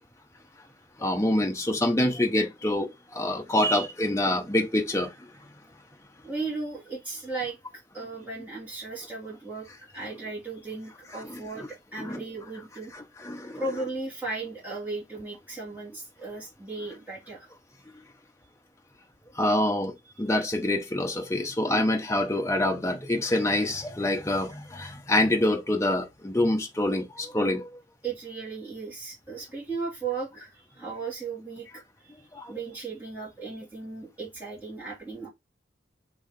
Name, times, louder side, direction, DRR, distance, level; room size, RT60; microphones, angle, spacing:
voice 1, 1.0-5.1 11.2-11.7 12.0-12.2 13.2-13.6 19.3-27.7 32.3-32.5, left 1 dB, 15° left, 0.6 m, -26 dB
voice 2, 6.2-7.6 7.9-12.9 13.5-17.5 28.0-31.7 32.0-35.3, right 3 dB, 10° right, 1.8 m, -36 dB
3.1 x 2.7 x 3.7 m
head